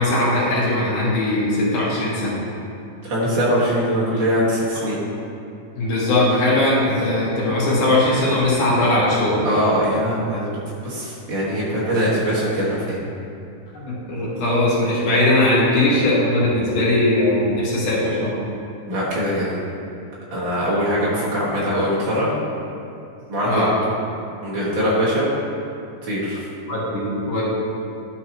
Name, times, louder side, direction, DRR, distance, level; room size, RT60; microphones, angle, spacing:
voice 1, 0.0-2.5 5.8-9.6 13.7-18.4 23.5-23.7 26.7-27.5, left 1 dB, 80° left, -6 dB, 3.2 m, -19 dB
voice 2, 3.0-5.0 9.4-10.5 10.8-13.0 18.9-19.6 20.3-22.3 23.3-23.7 24.4-25.3 26.0-26.4, equal, 45° right, -8 dB, 2.1 m, -22 dB
11.5 x 6.0 x 3.0 m, 2.6 s
omnidirectional pair, 3.5 m